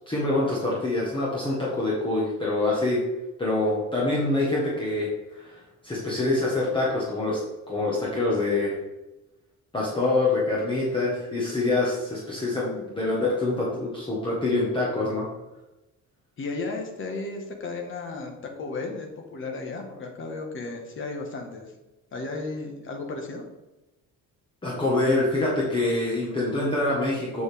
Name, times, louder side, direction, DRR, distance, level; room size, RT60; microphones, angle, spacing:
voice 1, 0.1-3.0 3.4-5.6 5.8-7.4 7.7-8.8 9.7-15.3 24.6-27.4, left 2 dB, 15° left, -6 dB, 1.4 m, -25 dB
voice 2, 16.4-21.7 22.1-23.4, left 3 dB, 40° left, 3 dB, 1.4 m, -34 dB
7.3 x 7.1 x 3.5 m, 1.0 s
cardioid pair, 180°, 31 cm